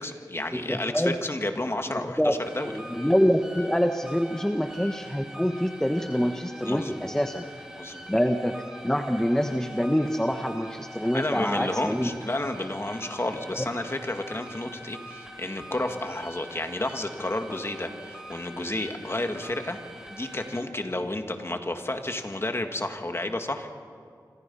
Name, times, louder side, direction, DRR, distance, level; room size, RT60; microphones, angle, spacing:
voice 1, 0.0-2.7 6.6-7.1 7.8-8.1 11.1-19.8 20.1-23.7, left 1 dB, 35° left, 5 dB, 2.1 m, -31 dB
voice 2, 0.5-1.2 1.9-2.3 2.7-7.4 8.1-12.1, equal, 5° left, 5 dB, 1.1 m, -26 dB
sound 1, 2.4-20.6, equal, 10° right, 4.2 m, -44 dB
27.0 x 26.0 x 5.6 m, 2.2 s
wide cardioid pair, 55°, 7 cm